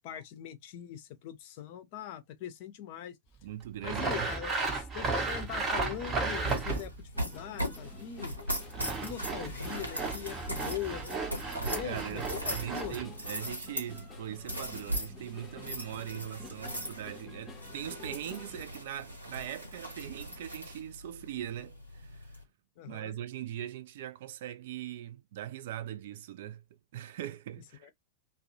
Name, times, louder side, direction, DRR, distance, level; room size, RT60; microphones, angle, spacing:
voice 1, 0.0-3.2 3.8-6.9 7.2-8.4 9.0-11.2 11.7-13.0 22.8-23.2 27.8-27.9, left 10 dB, 45° left, 0.5 m, -41 dB
voice 2, 3.4-4.3 11.4-22.3 22.8-26.6 26.9-27.9, right 11 dB, 55° right, 0.3 m, -41 dB
Sawing, 3.8-7.0 8.5-13.0, right 3 dB, 25° right, 0.7 m, -34 dB
sound 1, 5.3-22.4, equal, 85° right, 0.8 m, -40 dB
sound 2, 7.1-18.7, left 3 dB, 15° left, 0.7 m, -51 dB
2.3 x 2.0 x 2.7 m
figure-of-eight pair, 90°, 0 cm